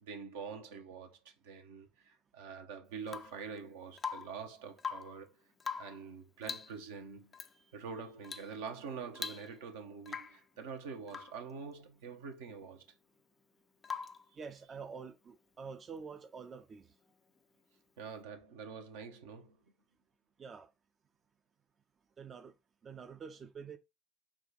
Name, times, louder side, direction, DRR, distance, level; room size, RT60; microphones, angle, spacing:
voice 1, 0.0-5.4 5.8-12.8 14.3-14.4 18.0-19.6, right 5 dB, 75° right, 0.8 m, -46 dB
Rain / Water tap faucet / Drip, 3.1-3.5 4.0-4.4 4.7-5.2 5.6-6.0 6.4-6.8 7.3-7.5 8.2-8.5 8.8-8.9 9.2-9.7 10.1-10.4 11.1-11.4 13.8-14.3 16.2-16.3, left 6 dB, 30° left, 0.4 m, -42 dB
voice 2, 14.4-16.9 20.4-20.7 22.2-22.5 22.8-23.8, right 5 dB, 35° right, 0.5 m, -47 dB
4.8 x 2.3 x 4.0 m
hypercardioid pair, 65°, 0 cm